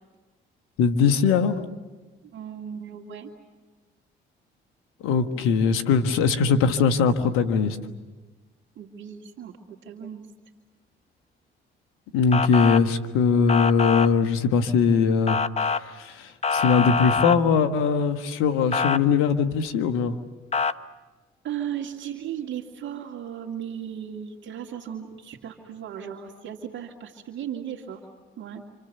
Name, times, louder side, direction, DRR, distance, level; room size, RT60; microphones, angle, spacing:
voice 1, 0.8-1.6 5.0-7.8 12.1-20.1, left 5 dB, 85° left, 9 dB, 1.6 m, -21 dB
voice 2, 2.2-3.3 8.8-10.2 21.4-28.1 28.4-28.6, right 9 dB, 65° right, 0 dB, 2.4 m, -36 dB
Motor vehicle (road) / Siren, 12.3-12.8 13.5-14.1 15.3-15.8 16.4-17.4 18.7-19.0 20.5-20.7, left 5 dB, 30° left, 0.9 m, -24 dB
29.0 x 26.5 x 7.0 m, 1.3 s
supercardioid pair, 60°, 21 cm